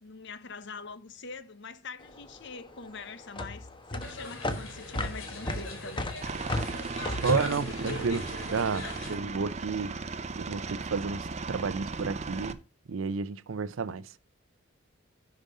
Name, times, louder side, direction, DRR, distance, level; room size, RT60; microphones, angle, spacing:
voice 1, 0.0-6.1, left 4 dB, 60° left, 0.9 m, -44 dB
sound 1, 2.0-8.5, left 1 dB, 25° left, 1.1 m, -36 dB
sound 2, 4.0-9.1, left 1 dB, 85° left, 3.7 m, -37 dB
Aircraft, 6.2-12.5, right 4 dB, 35° right, 0.7 m, -37 dB
voice 2, 7.2-9.9 10.4-12.6 12.9-14.1, right 5 dB, 75° right, 0.5 m, -31 dB
11.0 x 5.1 x 5.2 m
head